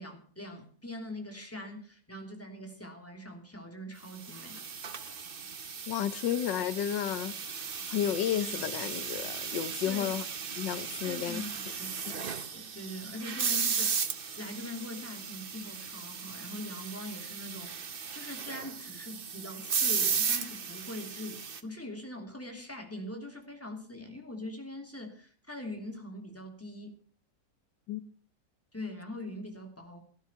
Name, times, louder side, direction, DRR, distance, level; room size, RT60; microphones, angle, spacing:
voice 1, 0.0-4.6 9.8-10.0 11.0-14.1 14.4-27.0 28.7-30.0, left 1 dB, 10° left, 3.1 m, -42 dB
sound 1, 4.2-21.6, right 6 dB, 40° right, 0.9 m, -35 dB
voice 2, 5.9-10.2 10.6-11.4 12.1-12.2 27.9-28.0, left 10 dB, 90° left, 1.6 m, -32 dB
15.0 x 12.0 x 5.6 m
omnidirectional pair, 1.9 m